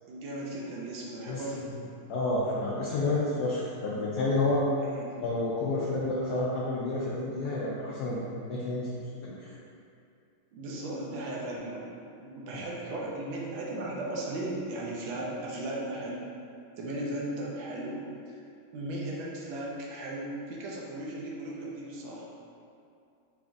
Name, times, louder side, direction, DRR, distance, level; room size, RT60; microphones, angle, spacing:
voice 1, 0.1-1.7 4.8-5.1 10.5-11.9 12.2-16.2 16.8-18.4 18.7-22.3, right 1 dB, 70° right, -3 dB, 1.5 m, -36 dB
voice 2, 1.3-1.7 2.1-4.6 5.2-8.2 8.5-8.9 9.2-9.3 12.5-12.6, left 2 dB, 70° left, -7 dB, 0.9 m, -30 dB
5.8 x 3.5 x 2.6 m, 2.5 s
omnidirectional pair, 2.4 m